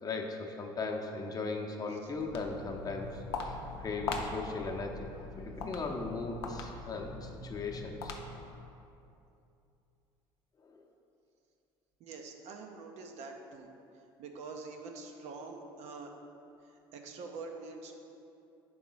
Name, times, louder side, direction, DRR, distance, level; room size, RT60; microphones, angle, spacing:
voice 1, 0.0-5.1 5.4-8.2 10.6-10.8, left 3 dB, 30° left, 1 dB, 0.7 m, -38 dB
Walk footsteps, 2.1-8.6, left 4 dB, 85° left, 0.5 m, -41 dB
voice 2, 12.0-13.7 14.2-16.1 16.9-17.9, right 4 dB, 60° right, 3 dB, 0.7 m, -45 dB
4.7 x 3.7 x 5.6 m, 2.7 s
hypercardioid pair, 70°, 13 cm